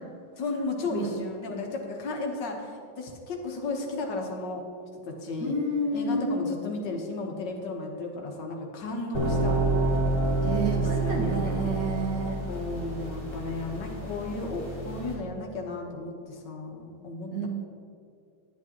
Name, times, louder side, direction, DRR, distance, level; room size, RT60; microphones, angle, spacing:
voice 1, 0.4-4.6 5.1-5.5 5.9-9.6 10.8-11.8 12.4-17.5, left 3 dB, 75° left, 1 dB, 1.8 m, -34 dB
voice 2, 5.4-6.6 10.4-12.4 17.3-17.5, right 1 dB, 85° right, -4 dB, 2.3 m, -29 dB
sound 1, 9.1-15.1, right 2 dB, 45° left, 2.9 m, -28 dB
10.5 x 10.0 x 2.9 m, 2.3 s
omnidirectional pair, 1.9 m